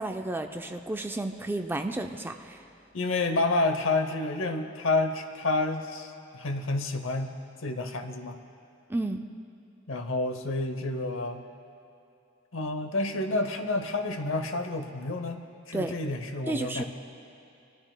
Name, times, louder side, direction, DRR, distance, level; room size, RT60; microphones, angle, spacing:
voice 1, 0.0-2.6 8.9-9.2 15.7-15.9 16.5-16.8, right 2 dB, 10° right, 6 dB, 0.3 m, -32 dB
voice 2, 2.9-7.3 7.6-8.4 9.9-11.4 12.5-15.4 15.7-16.8, left 2 dB, 70° left, 8 dB, 0.8 m, -29 dB
21.0 x 13.0 x 2.2 m, 2.5 s
head